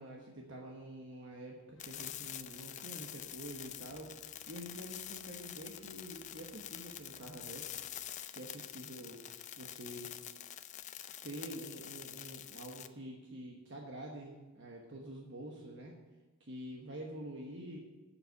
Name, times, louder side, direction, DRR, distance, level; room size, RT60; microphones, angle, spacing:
voice 1, 0.0-7.7 8.3-9.2 9.6-10.1 11.2-15.9 16.4-17.8, right 1 dB, 55° right, 0 dB, 1.2 m, -47 dB
sound 1, 1.7-8.0, left 2 dB, 80° left, 1.3 m, -66 dB
sound 2, 1.8-12.9, left 11 dB, 35° left, 0.4 m, -47 dB
7.6 x 7.0 x 8.2 m, 1.2 s
head